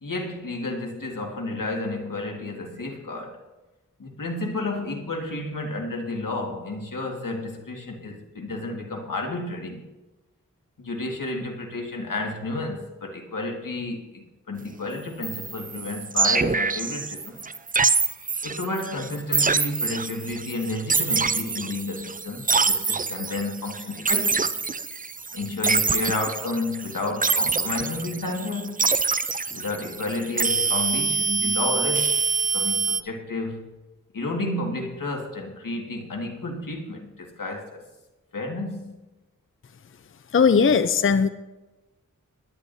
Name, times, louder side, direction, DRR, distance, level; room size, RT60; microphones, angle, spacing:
voice 1, 0.0-3.4 4.0-9.8 10.8-17.4 18.4-24.6 25.3-28.9 29.5-32.1 32.5-33.8 34.1-37.8 38.3-38.9, left 2 dB, 85° left, 1 dB, 1.8 m, -31 dB
sound 1, 15.2-33.0, right 4 dB, 25° right, 0.4 m, -25 dB
voice 2, 40.3-41.3, left 6 dB, 40° left, 11 dB, 0.5 m, -18 dB
20.5 x 10.5 x 2.7 m, 1.1 s
wide cardioid pair, 55°, 32 cm